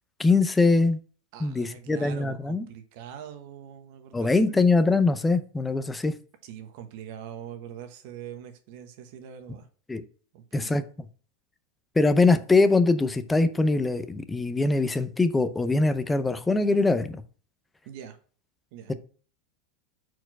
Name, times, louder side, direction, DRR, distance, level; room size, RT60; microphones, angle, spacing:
voice 1, 0.2-1.0 1.4-2.6 4.1-6.1 9.9-10.0 10.5-10.8 12.0-17.2, left 3 dB, 10° left, 11 dB, 0.5 m, -22 dB
voice 2, 1.3-4.7 6.4-9.7 10.3-10.8 17.8-18.2 18.7-18.9, right 9 dB, 60° right, 8 dB, 1.2 m, -43 dB
4.7 x 4.4 x 5.9 m, 0.41 s
supercardioid pair, 145°, 0 cm